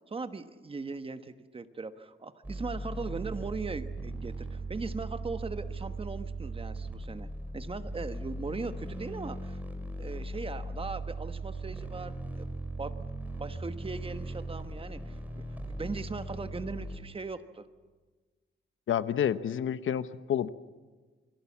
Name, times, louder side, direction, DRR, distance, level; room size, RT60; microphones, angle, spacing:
voice 1, 0.1-7.3 7.5-9.6 10.0-12.5 12.8-13.0 13.4-17.7, right 4 dB, 25° right, 10 dB, 1.2 m, -39 dB
sound 1, 2.4-17.0, right 2 dB, 10° right, 3.8 m, -38 dB
voice 2, 18.9-20.5, left 9 dB, 80° left, 13 dB, 1.0 m, -29 dB
28.0 x 22.0 x 7.3 m, 1.3 s
wide cardioid pair, 150°, 20 cm